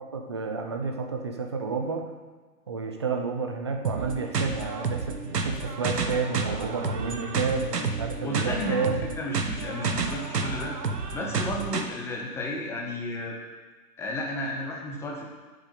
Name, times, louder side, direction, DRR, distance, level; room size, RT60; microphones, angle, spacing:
voice 1, 0.0-2.0 2.7-9.1, right 4 dB, 20° right, 3 dB, 0.5 m, -30 dB
sound 1, 3.8-11.8, right 4 dB, 75° right, 1.5 m, -30 dB
voice 2, 8.2-10.8 11.1-13.4 14.0-15.2, left 1 dB, 5° left, -1 dB, 0.9 m, -33 dB
8.3 x 7.3 x 8.3 m, 1.4 s
figure-of-eight pair, 135°, 49 cm